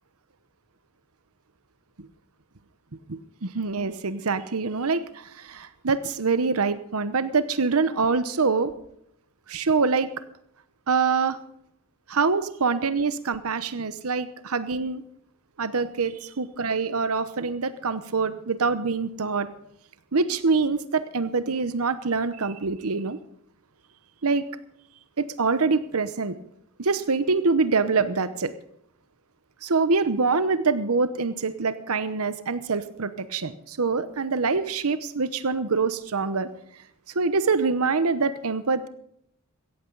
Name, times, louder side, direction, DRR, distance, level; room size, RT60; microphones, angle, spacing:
voice 1, 3.1-8.7 9.5-10.1 10.9-11.4 12.1-15.0 15.6-19.5 20.1-23.2 24.2-24.4 25.2-26.3 26.8-28.5 29.6-36.5 37.1-38.9, right 4 dB, 85° right, 13 dB, 0.9 m, -25 dB
17.0 x 14.5 x 4.0 m, 0.73 s
head